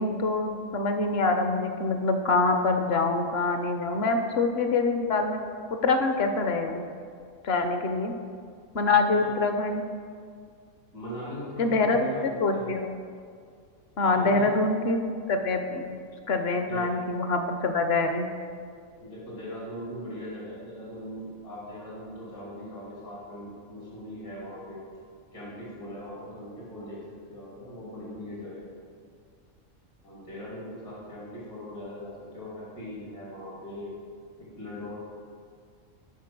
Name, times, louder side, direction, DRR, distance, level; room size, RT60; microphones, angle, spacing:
voice 1, 0.0-5.4 5.7-6.9 7.4-8.1 8.7-9.8 11.6-12.9 14.0-15.0 15.3-16.0 16.3-18.3, left 3 dB, 55° left, 6 dB, 0.9 m, -25 dB
voice 2, 10.9-12.7 14.0-14.7 16.5-16.9 18.9-24.8 25.3-28.7 30.0-34.0 34.4-35.0, left 1 dB, 80° left, -7 dB, 3.5 m, -40 dB
8.6 x 6.3 x 6.0 m, 2.1 s
omnidirectional pair, 1.5 m